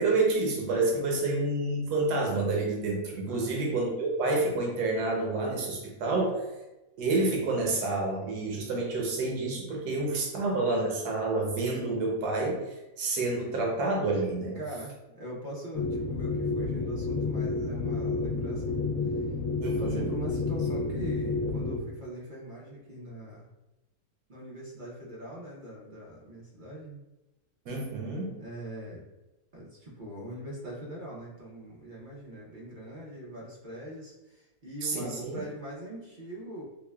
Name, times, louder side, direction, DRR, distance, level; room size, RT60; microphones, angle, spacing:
voice 1, 0.0-6.4 7.0-12.6 13.0-14.6 19.6-20.1 27.7-28.4 34.8-35.4, right 2 dB, 90° right, -1 dB, 1.2 m, -28 dB
voice 2, 14.5-18.8 19.6-23.5 24.3-27.0 28.4-29.1 29.5-36.6, right 1 dB, 50° right, -4 dB, 0.6 m, -41 dB
sound 1, 15.7-21.8, left 3 dB, 70° left, 0.9 m, -30 dB
5.5 x 2.1 x 2.2 m, 1.0 s
omnidirectional pair, 1.6 m